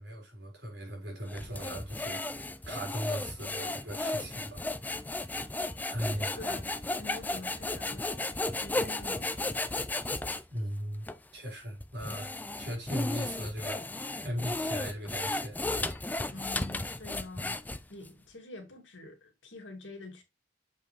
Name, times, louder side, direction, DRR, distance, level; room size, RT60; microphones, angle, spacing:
voice 1, 0.0-4.6 5.9-6.4 10.3-11.1 11.3-12.3 12.6-15.6, equal, 60° right, 4.1 m, -38 dB
sound 1, 1.3-10.4 11.0-11.2 11.8-18.1, left 2 dB, 10° left, 0.4 m, -34 dB
voice 2, 7.0-9.6 16.3-17.6 17.9-20.2, left 2 dB, 80° left, 2.3 m, -46 dB
7.1 x 5.5 x 3.2 m
head